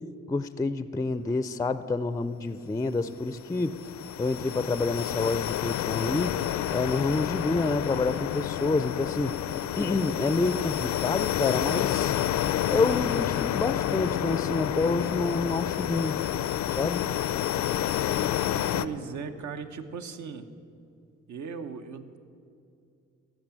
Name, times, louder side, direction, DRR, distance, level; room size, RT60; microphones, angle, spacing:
voice 1, 0.3-3.8 4.2-6.4 6.7-9.3 9.8-12.1 12.7-16.2 16.7-17.1, left 3 dB, 10° left, 14 dB, 0.3 m, -28 dB
sound 1, 3.2-18.9, left 11 dB, 75° left, 0.5 m, -29 dB
voice 2, 18.7-20.4 21.3-22.2, right 5 dB, 75° right, 7 dB, 0.9 m, -37 dB
14.5 x 6.0 x 8.8 m, 2.5 s
cardioid pair, 85°, 29 cm